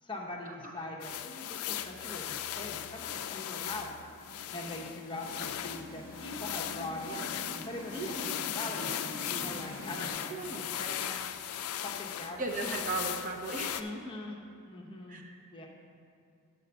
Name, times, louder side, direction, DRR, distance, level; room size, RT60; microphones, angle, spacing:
voice 1, 0.0-3.9 4.5-7.4 7.7-11.2 11.8-12.9 13.8-15.2 15.5-15.7, left 2 dB, 20° left, -1 dB, 0.8 m, -42 dB
sound 1, 1.0-13.8, left 10 dB, 85° left, 0.4 m, -38 dB
sound 2, 3.8-10.1, equal, 10° right, 1.3 m, -46 dB
voice 2, 7.9-8.3 10.3-10.7 12.4-13.7 15.1-15.4, right 2 dB, 35° right, 1 dB, 0.8 m, -36 dB
9.6 x 4.3 x 6.8 m, 2.6 s
head